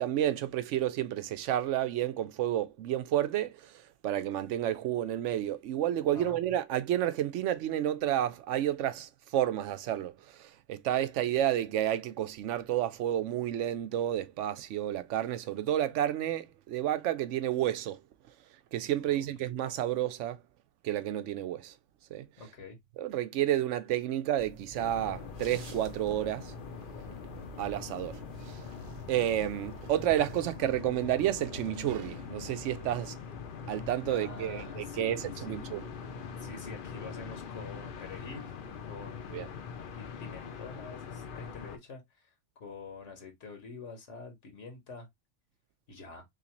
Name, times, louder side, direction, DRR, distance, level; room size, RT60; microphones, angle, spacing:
voice 1, 0.0-18.0 18.7-20.4 20.8-21.7 22.1-22.3 23.0-26.5 27.6-28.6 29.1-33.2 33.7-35.8 39.3-39.5, right 12 dB, 85° right, 0.9 m, -31 dB
voice 2, 22.4-22.8 34.1-35.7 36.4-38.5 38.8-39.6 40.0-45.1 45.9-46.2, left 3 dB, 80° left, 1.5 m, -47 dB
sound 1, 24.4-30.6, right 4 dB, 40° right, 0.7 m, -50 dB
sound 2, 24.8-41.8, left 6 dB, 55° left, 0.7 m, -43 dB
3.9 x 3.1 x 2.9 m
omnidirectional pair, 1.2 m